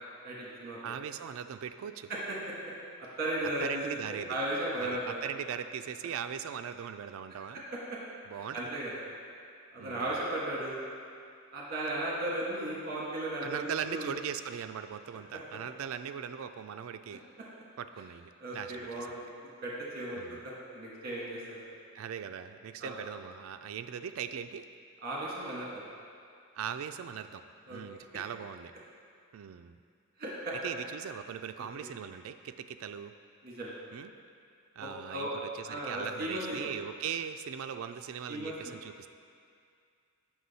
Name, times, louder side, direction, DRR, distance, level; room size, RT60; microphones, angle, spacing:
voice 1, 0.2-0.9 2.1-2.4 3.2-5.2 7.5-7.6 8.5-8.9 9.7-10.8 11.5-14.1 18.4-19.2 19.6-20.4 20.7-21.6 22.8-22.9 25.0-25.7 27.7-27.8 30.2-30.5 31.8-31.9 33.4-33.7 34.8-35.3 35.6-36.7 38.3-38.5, right 1 dB, 45° right, -5 dB, 1.4 m, -35 dB
voice 2, 0.8-2.1 3.6-4.4 4.8-7.6 8.3-8.7 9.8-10.1 13.4-17.2 17.8-19.1 20.2-20.4 21.9-24.6 26.5-27.4 27.7-28.7 29.3-29.7 30.6-33.1 33.9-34.1 34.8-39.1, right 8 dB, 75° right, 8 dB, 0.3 m, -40 dB
7.8 x 6.0 x 4.1 m, 2.3 s
head